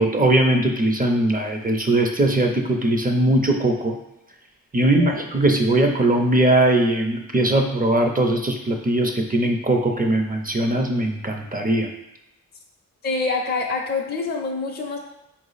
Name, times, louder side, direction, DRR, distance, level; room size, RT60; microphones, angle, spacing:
voice 1, 0.0-4.0 4.7-11.9, right 1 dB, 25° right, 3 dB, 0.5 m, -20 dB
voice 2, 4.8-5.2 13.0-15.0, left 4 dB, 30° left, 1 dB, 0.6 m, -26 dB
4.4 x 2.0 x 3.9 m, 0.88 s
cardioid pair, 55°, 35 cm